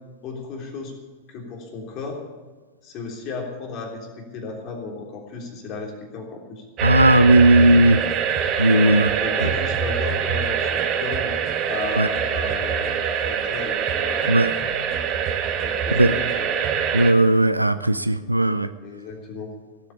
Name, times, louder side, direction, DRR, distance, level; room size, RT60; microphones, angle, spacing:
voice 1, 0.2-0.9 1.3-2.2 2.8-6.7 8.6-11.3 11.7-14.8 15.6-16.5 18.8-19.6, left 3 dB, 35° left, 1 dB, 3.4 m, -34 dB
sound 1, 6.8-17.1, right 8 dB, 35° right, 1.5 m, -24 dB
voice 2, 6.8-8.0 8.6-9.1 12.0-12.1 14.3-14.5 16.0-16.2 16.9-18.7, right 1 dB, 85° right, 12 dB, 0.4 m, -16 dB
17.0 x 8.4 x 7.1 m, 1.3 s
figure-of-eight pair, 90°, 0 cm